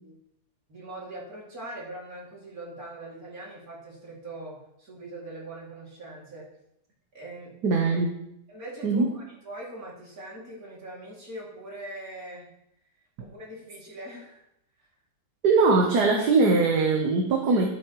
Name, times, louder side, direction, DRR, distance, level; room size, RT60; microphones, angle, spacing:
voice 1, 0.7-6.5 7.1-7.6 8.5-12.5 13.2-14.4 14.8-14.9, right 1 dB, 60° right, -4 dB, 3.1 m, -41 dB
voice 2, 7.6-8.1 8.8-9.1 15.4-17.7, right 3 dB, 75° right, 1 dB, 1.6 m, -21 dB
12.0 x 8.2 x 3.1 m, 0.77 s
omnidirectional pair, 1.8 m